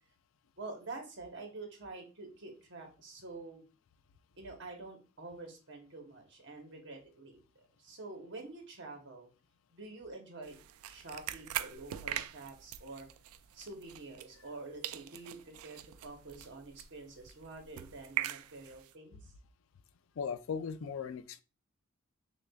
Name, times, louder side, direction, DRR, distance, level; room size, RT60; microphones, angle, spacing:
voice 1, 0.6-3.6 4.4-9.3 9.7-10.5 10.9-13.1 13.5-19.3, right 3 dB, 55° right, 1.1 m, -47 dB
sound 1, 10.4-14.6 14.8-18.9, right 12 dB, 80° right, 0.3 m, -42 dB
voice 2, 20.2-21.4, left 6 dB, 65° left, 0.3 m, -38 dB
6.2 x 2.4 x 2.3 m
head